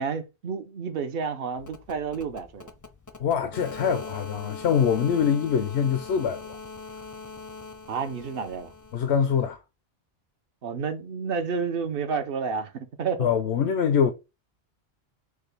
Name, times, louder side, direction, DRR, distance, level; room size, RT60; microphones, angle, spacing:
voice 1, 0.0-2.7 4.9-5.0 7.9-8.7 10.6-13.3, right 5 dB, 65° right, 0.9 m, -30 dB
sound 1, 1.6-9.5, left 4 dB, 25° left, 0.4 m, -42 dB
voice 2, 3.2-6.6 8.9-9.6 13.2-14.1, left 7 dB, 85° left, 0.9 m, -24 dB
6.5 x 2.2 x 3.3 m
omnidirectional pair, 1.1 m